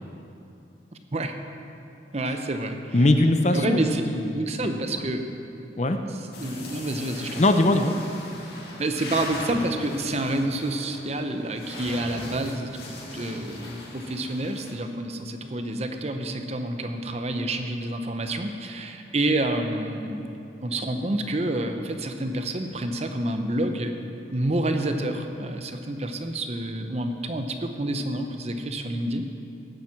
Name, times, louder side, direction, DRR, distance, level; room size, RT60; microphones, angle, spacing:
voice 1, 2.1-3.1 3.5-4.0 4.3-5.3 6.4-7.4 8.8-12.7 13.1-20.3 20.6-23.9 24.3-29.2, right 1 dB, 35° right, 6 dB, 0.7 m, -28 dB
voice 2, 2.9-3.8 4.1-5.1 5.8-6.0 7.4-8.0, left 2 dB, 40° left, 7 dB, 0.6 m, -21 dB
sound 1, 6.3-14.7, left 2 dB, 60° left, 1.9 m, -39 dB
15.5 x 7.4 x 5.9 m, 2.7 s
head